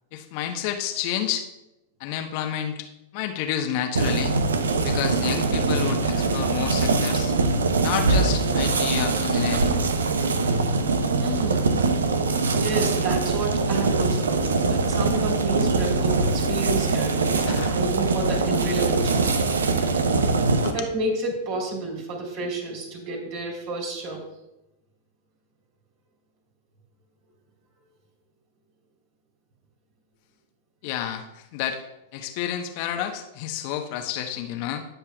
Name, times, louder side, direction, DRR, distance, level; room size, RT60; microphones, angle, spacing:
voice 1, 0.1-1.5 2.0-2.9 3.1-4.4 4.8-7.3 7.8-9.8 17.3-17.8 20.6-20.7 30.8-31.8 32.1-34.9, left 10 dB, 50° left, 5 dB, 1.1 m, -30 dB
sound 1, 4.0-20.7, right 3 dB, 75° right, 0.8 m, -23 dB
voice 2, 11.2-11.8 12.6-17.4 17.8-19.3 20.7-24.2, right 2 dB, 50° right, 0 dB, 3.6 m, -30 dB
18.0 x 7.2 x 2.4 m, 0.92 s
figure-of-eight pair, 95°, 0 cm